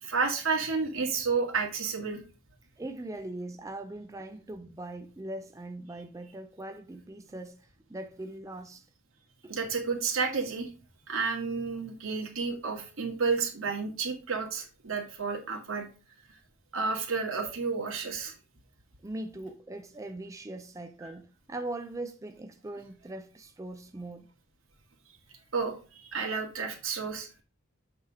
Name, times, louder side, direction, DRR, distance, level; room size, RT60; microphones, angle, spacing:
voice 1, 0.0-2.2 9.5-10.7 11.1-15.9 16.7-18.3 21.0-21.1 25.5-27.3, right 5 dB, 75° right, 1.9 m, -31 dB
voice 2, 2.8-8.9 9.4-9.5 19.0-24.3, right 2 dB, 15° right, 0.4 m, -40 dB
8.1 x 3.5 x 4.8 m
head